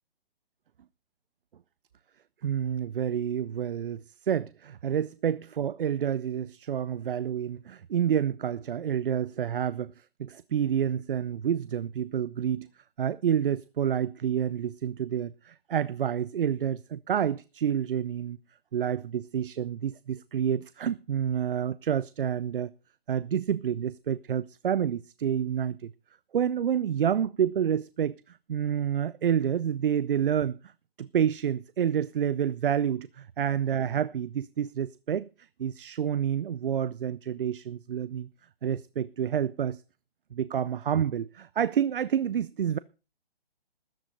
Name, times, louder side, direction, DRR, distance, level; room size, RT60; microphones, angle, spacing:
voice 1, 2.4-9.9 10.2-12.7 13.0-18.4 18.7-22.7 23.1-25.9 26.3-30.7 31.0-35.3 35.6-38.3 38.6-39.8 40.3-42.8, right 9 dB, 60° right, 0.6 m, -28 dB
13.5 x 10.0 x 5.2 m
hypercardioid pair, 155°, 30 cm